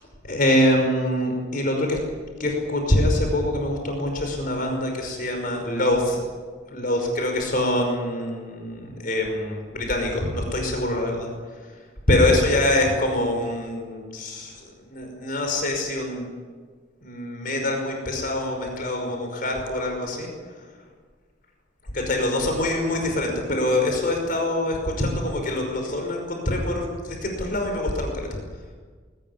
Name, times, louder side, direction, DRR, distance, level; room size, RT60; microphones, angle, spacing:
voice 1, 0.2-2.0 2.4-6.2 6.7-11.3 12.1-14.5 14.8-16.3 17.0-20.3 21.9-28.4, left 1 dB, 45° left, 2 dB, 5.4 m, -24 dB
21.5 x 19.0 x 9.6 m, 1.5 s
head